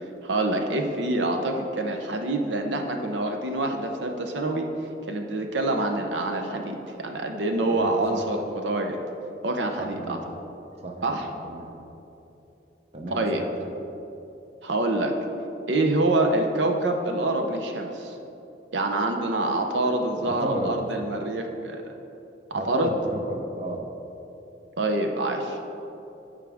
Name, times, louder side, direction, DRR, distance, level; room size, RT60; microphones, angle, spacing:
voice 1, 0.2-4.7 5.1-9.0 9.4-10.2 11.0-11.3 13.1-13.4 14.6-15.1 15.7-18.1 18.7-21.8 22.7-22.9 24.8-25.6, right 2 dB, 80° right, 4 dB, 0.7 m, -26 dB
voice 2, 7.6-8.2 9.8-10.4 10.8-11.7 12.9-13.4 20.2-20.8 22.5-23.9, right 1 dB, 35° right, 2 dB, 0.7 m, -34 dB
14.0 x 5.0 x 3.5 m, 2.9 s
head